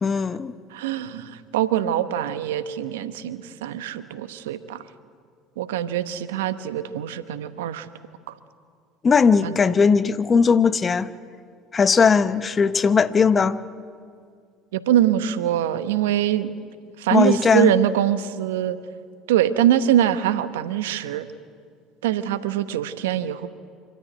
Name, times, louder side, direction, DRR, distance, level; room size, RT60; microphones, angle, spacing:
voice 1, 0.0-0.5 9.0-11.1 11.7-13.6 17.1-17.7, left 5 dB, 30° left, 14 dB, 0.9 m, -18 dB
voice 2, 0.7-4.8 5.6-7.9 8.3-8.4 9.4-9.6 14.7-16.6 17.0-18.8 19.3-21.3 22.0-23.5, right 11 dB, 80° right, 13 dB, 1.0 m, -23 dB
25.5 x 14.0 x 9.4 m, 2.1 s
hypercardioid pair, 70°, 0 cm